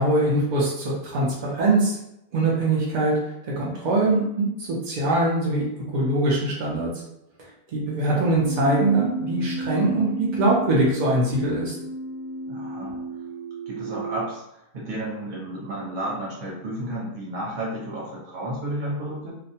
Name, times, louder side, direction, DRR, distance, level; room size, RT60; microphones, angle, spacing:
voice 1, 0.0-2.0 2.3-3.2 3.4-5.6 5.9-6.9 7.7-11.7, right 2 dB, 65° right, -4 dB, 0.4 m, -22 dB
Keyboard (musical), 8.3-14.3, right 3 dB, 60° left, 0.7 m, -33 dB
voice 2, 12.5-13.0 13.7-19.3, right 1 dB, 40° right, -6 dB, 0.9 m, -32 dB
2.4 x 2.1 x 2.7 m, 0.83 s
omnidirectional pair, 1.4 m